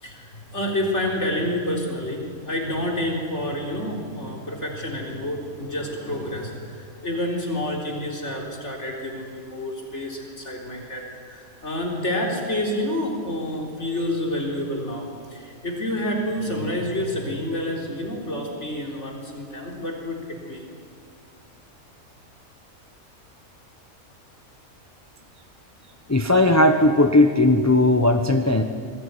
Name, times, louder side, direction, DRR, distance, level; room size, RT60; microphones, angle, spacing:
voice 1, 0.0-20.6, left 1 dB, 55° left, 0 dB, 4.2 m, -28 dB
voice 2, 26.1-28.6, left 2 dB, 15° left, 6 dB, 1.0 m, -17 dB
26.5 x 21.0 x 9.7 m, 2.2 s
omnidirectional pair, 1.4 m